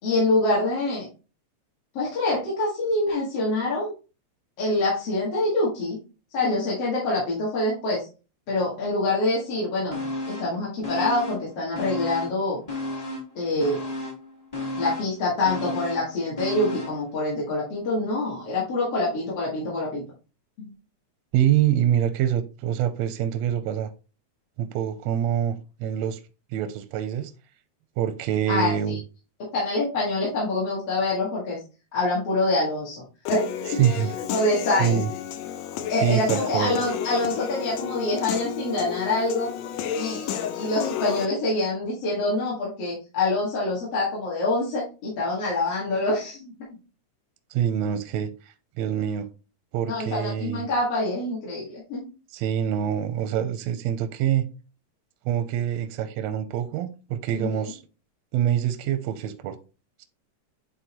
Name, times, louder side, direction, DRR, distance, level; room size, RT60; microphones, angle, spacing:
voice 1, 0.0-1.1 1.9-3.9 4.6-6.0 6.3-8.1 8.5-10.0 10.3-12.6 13.3-13.8 14.8-20.0 20.6-20.7 28.5-29.0 29.5-31.6 31.9-33.0 33.3-33.8 34.3-35.0 35.9-39.5 40.0-46.5 49.9-52.1 57.3-57.7, left 2 dB, 55° left, 2.8 m, -25 dB
sound 1, 9.9-10.6 10.8-12.4 12.7-17.0 17.4-17.5, left 2 dB, 25° left, 0.8 m, -33 dB
voice 2, 21.3-23.9 24.6-25.5 25.8-26.2 26.5-27.3 28.0-29.0 33.8-34.1 34.8-35.1 36.0-36.8 47.5-49.3 49.7-50.7 52.3-54.5 55.2-57.8 58.3-59.6, right 10 dB, 80° right, 1.7 m, -25 dB
Human voice / Piano, 33.3-41.3, left 9 dB, 75° left, 1.8 m, -32 dB
9.1 x 3.8 x 3.0 m
omnidirectional pair, 3.4 m